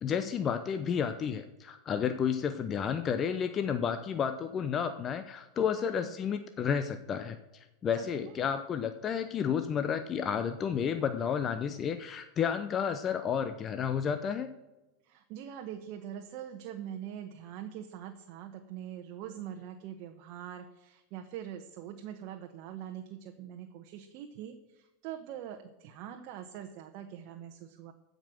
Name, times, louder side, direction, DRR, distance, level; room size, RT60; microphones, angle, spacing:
voice 1, 0.0-14.5, left 7 dB, 30° left, 9 dB, 0.7 m, -31 dB
voice 2, 8.0-8.5 15.0-27.9, right 10 dB, 55° right, 4 dB, 1.0 m, -43 dB
15.0 x 5.2 x 6.3 m, 1.0 s
hypercardioid pair, 115°, 0 cm